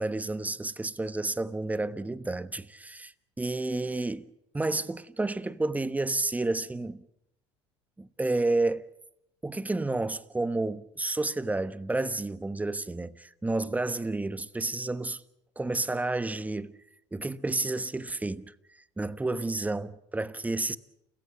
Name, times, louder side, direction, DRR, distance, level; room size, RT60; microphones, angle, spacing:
voice 1, 0.0-7.0 8.0-8.8 9.4-15.2 15.6-16.7 17.1-18.5 19.0-20.8, right 2 dB, 10° right, 1.1 m, -30 dB
29.5 x 15.0 x 8.0 m
hypercardioid pair, 75°, 14 cm